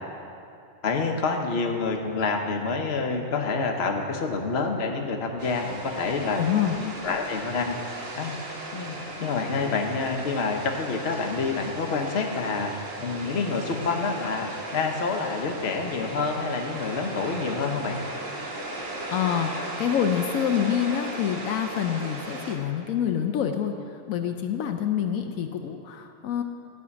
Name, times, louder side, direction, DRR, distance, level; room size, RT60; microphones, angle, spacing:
voice 1, 0.8-6.4 6.8-7.8 8.1-8.3 8.7-12.7 13.0-18.0, left 4 dB, 50° left, 3 dB, 1.2 m, -27 dB
sound 1, 5.4-22.5, right 1 dB, 70° right, 1.9 m, -37 dB
voice 2, 6.4-6.8 19.1-26.4, left 9 dB, 80° left, 5 dB, 1.0 m, -26 dB
12.0 x 5.6 x 8.4 m, 2.5 s
omnidirectional pair, 1.4 m